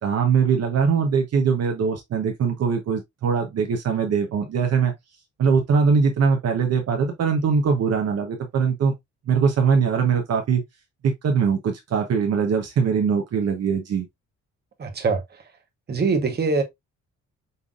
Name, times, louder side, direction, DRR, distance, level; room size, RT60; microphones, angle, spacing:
voice 1, 0.0-4.9 5.4-8.9 9.3-10.6 11.0-14.1, right 6 dB, 55° right, 1.0 m, -21 dB
voice 2, 14.8-15.2 15.9-16.6, right 4 dB, 35° right, 1.2 m, -22 dB
5.5 x 3.4 x 2.4 m
cardioid pair, 160°, 30 cm